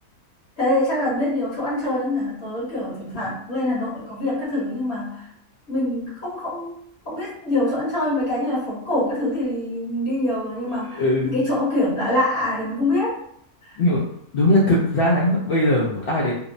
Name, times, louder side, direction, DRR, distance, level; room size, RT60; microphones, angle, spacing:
voice 1, 0.6-5.3 5.7-6.8 7.0-13.2 13.6-13.8, left 1 dB, 55° left, -8 dB, 1.1 m, -24 dB
voice 2, 10.9-11.4 13.8-14.0 14.3-16.3, left 1 dB, 70° left, -5 dB, 0.5 m, -20 dB
2.9 x 2.0 x 2.5 m, 0.70 s
omnidirectional pair, 1.5 m